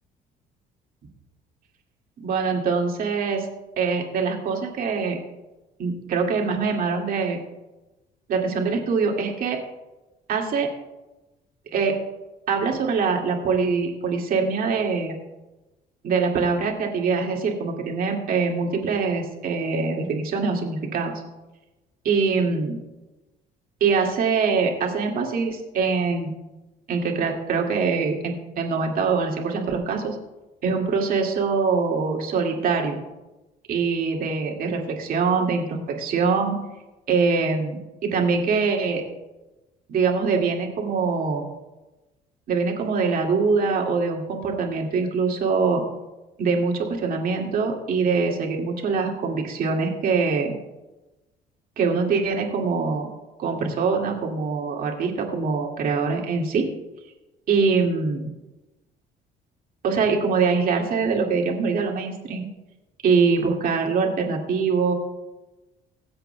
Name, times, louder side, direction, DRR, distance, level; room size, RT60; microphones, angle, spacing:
voice 1, 2.2-3.5 3.8-5.2 5.8-7.4 8.3-9.6 10.3-10.7 11.7-12.0 12.5-15.1 16.0-21.1 22.0-22.8 23.8-26.3 26.9-30.2 30.6-33.0 33.7-36.6 37.1-39.0 39.9-41.5 42.5-45.8 46.4-50.5 51.8-53.1 53.4-56.7 57.5-58.3 59.8-62.5 63.0-64.9, right 5 dB, 60° right, 1 dB, 2.1 m, -23 dB
22.0 x 7.9 x 2.2 m, 1.0 s
cardioid pair, 110°, 17 cm